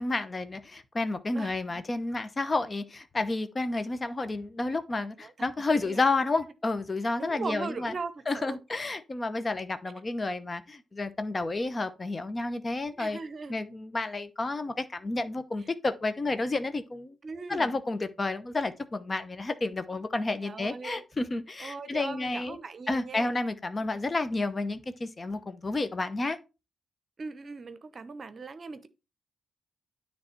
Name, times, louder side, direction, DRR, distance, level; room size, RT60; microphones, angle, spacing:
voice 1, 0.0-7.9 8.3-13.2 13.5-17.2 17.5-22.6 22.9-26.4, left 2 dB, 35° left, 0.9 m, -31 dB
voice 2, 7.2-8.6 12.9-13.5 17.2-17.7 20.4-21.0 21.6-23.3 23.8-23.9 27.2-28.9, right 4 dB, 50° right, 0.8 m, -39 dB
9.6 x 3.4 x 4.4 m
hypercardioid pair, 45°, 0 cm